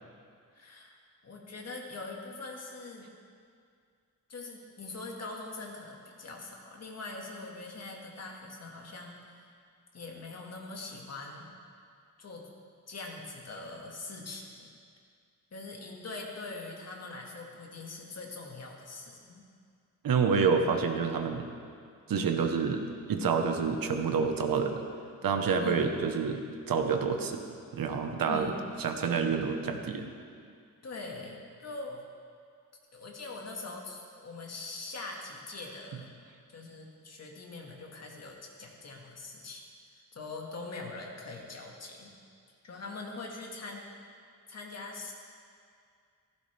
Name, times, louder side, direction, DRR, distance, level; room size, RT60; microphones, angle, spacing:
voice 1, 0.6-1.0 1.2-3.1 4.3-9.5 9.9-11.5 12.2-12.5 12.9-14.7 15.5-19.4 25.6-25.9 28.2-28.6 30.8-32.0 32.9-36.1 36.5-39.6 40.1-42.1 42.6-43.9 44.5-45.1, left 3 dB, 50° left, -1 dB, 1.9 m, -42 dB
voice 2, 20.0-21.5 22.1-24.8 25.2-27.4 27.7-28.5 28.8-30.1, right 5 dB, 80° right, 5 dB, 1.2 m, -28 dB
15.5 x 14.5 x 3.4 m, 2.2 s
wide cardioid pair, 165°, 34 cm